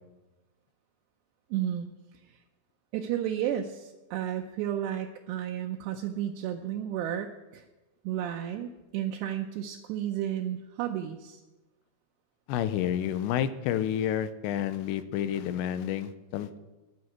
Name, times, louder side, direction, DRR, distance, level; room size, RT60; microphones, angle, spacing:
voice 1, 1.5-1.9 2.2-2.4 2.9-7.7 8.0-11.4, right 10 dB, 80° right, 3 dB, 2.8 m, -32 dB
voice 2, 12.5-16.6, left 10 dB, 90° left, 13 dB, 2.9 m, -30 dB
9.5 x 9.2 x 9.9 m, 1.1 s
omnidirectional pair, 5.1 m